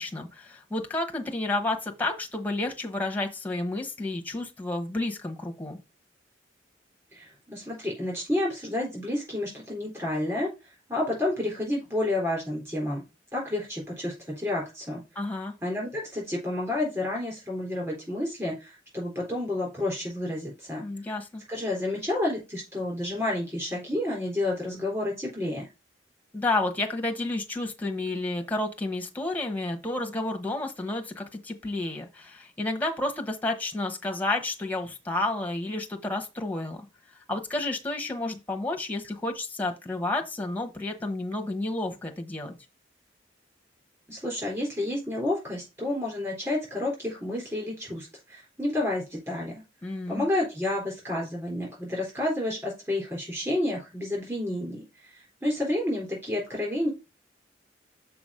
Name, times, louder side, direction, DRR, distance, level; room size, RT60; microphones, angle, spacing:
voice 1, 0.0-5.8 15.1-15.5 20.8-21.4 26.3-36.9 37.3-42.6 49.8-50.3, left 2 dB, 10° left, 1.1 m, -31 dB
voice 2, 7.1-13.0 13.3-15.0 15.6-20.8 21.5-25.7 44.1-49.6 50.1-56.9, left 1 dB, 15° right, 3.8 m, -30 dB
6.0 x 4.8 x 5.0 m
head